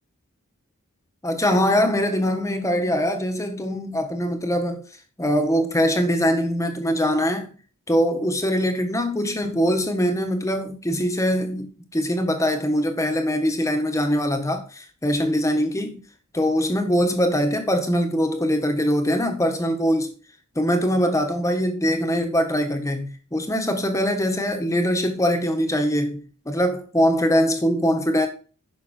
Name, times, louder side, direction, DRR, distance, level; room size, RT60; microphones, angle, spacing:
voice 1, 1.2-4.8 5.2-7.5 7.9-16.0 16.3-20.1 20.5-28.3, equal, 15° left, 1.5 m, -22 dB
10.5 x 6.1 x 4.4 m
head